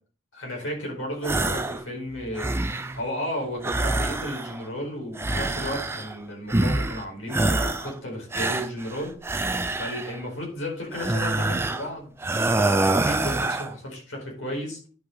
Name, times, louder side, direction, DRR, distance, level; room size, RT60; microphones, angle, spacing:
voice 1, 0.3-2.5 2.9-9.2 9.7-14.9, equal, 85° left, 0 dB, 4.6 m, -33 dB
sound 1, 1.2-1.8 2.2-3.0 3.6-4.7 5.1-6.2 6.5-7.0 7.3-7.9 8.3-10.2 10.9-11.9 12.2-13.7, right 2 dB, 10° right, 0.4 m, -26 dB
10.5 x 5.8 x 3.8 m, 0.41 s
head